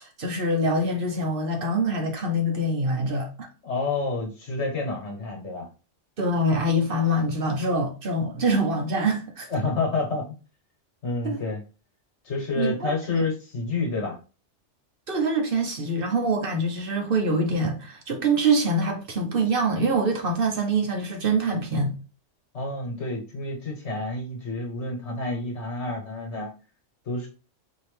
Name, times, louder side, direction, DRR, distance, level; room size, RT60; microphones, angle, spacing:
voice 1, 0.0-3.5 6.2-9.5 11.2-11.4 12.6-13.2 15.1-22.0, right 1 dB, 50° right, 1.0 m, -25 dB
voice 2, 3.6-5.7 9.5-10.2 11.0-11.6 12.2-14.2 22.5-26.5 27.0-27.3, left 3 dB, 65° left, 1.5 m, -29 dB
4.6 x 2.9 x 3.3 m
omnidirectional pair, 1.3 m